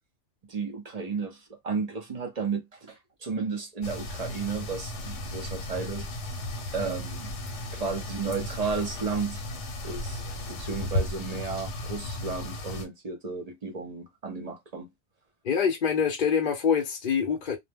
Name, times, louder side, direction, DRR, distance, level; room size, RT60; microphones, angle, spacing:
voice 1, 0.4-6.1 6.7-7.3 7.7-9.5 9.8-10.2 10.5-14.9, right 5 dB, 40° right, 0.6 m, -33 dB
sound 1, 3.8-12.8, left 1 dB, 80° left, 1.1 m, -35 dB
voice 2, 15.4-17.6, left 7 dB, 50° left, 0.7 m, -25 dB
2.2 x 2.0 x 3.3 m
omnidirectional pair, 1.2 m